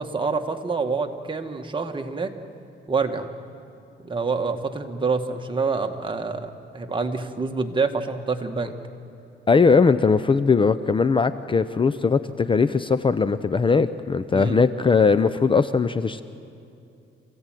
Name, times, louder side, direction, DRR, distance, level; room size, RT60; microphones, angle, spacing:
voice 1, 0.0-2.3 2.9-3.3 4.0-8.7 14.3-14.6, right 4 dB, 25° right, 5 dB, 1.8 m, -27 dB
voice 2, 9.5-16.2, left 5 dB, 25° left, 13 dB, 0.6 m, -20 dB
27.5 x 16.0 x 9.2 m, 2.6 s
cardioid pair, 90°, 20 cm